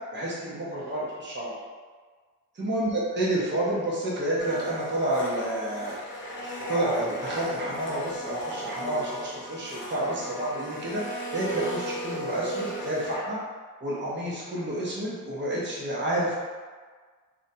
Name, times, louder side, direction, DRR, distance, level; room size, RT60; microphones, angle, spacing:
voice 1, 0.1-1.5 2.6-6.0 6.4-13.4 13.8-16.4, right 1 dB, 35° right, -6 dB, 0.6 m, -29 dB
Domestic sounds home sounds, 4.4-13.2, right 1 dB, 35° left, 0.6 m, -35 dB
2.5 x 2.1 x 2.6 m, 1.5 s
wide cardioid pair, 110°, 33 cm